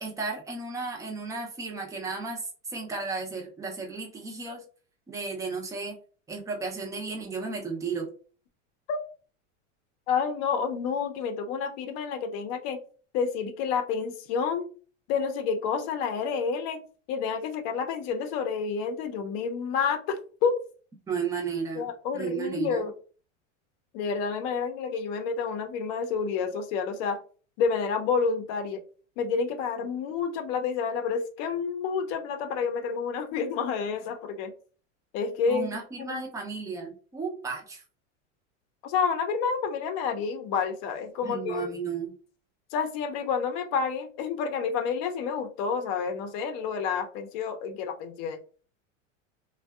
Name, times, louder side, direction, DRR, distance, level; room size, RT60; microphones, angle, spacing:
voice 1, 0.0-4.6 5.1-6.0 6.3-8.1 21.1-21.9 22.1-22.9 35.5-37.8 41.2-42.1, right 4 dB, 10° right, 0 dB, 0.4 m, -34 dB
voice 2, 10.1-12.8 13.1-14.7 15.1-16.8 17.1-20.6 21.7-22.9 23.9-27.2 27.6-28.8 29.2-34.5 35.1-35.7 36.0-36.2 38.8-41.7 42.7-48.4, left 6 dB, 50° left, 7 dB, 0.6 m, -29 dB
2.6 x 2.2 x 2.3 m, 0.40 s
supercardioid pair, 130°, 37 cm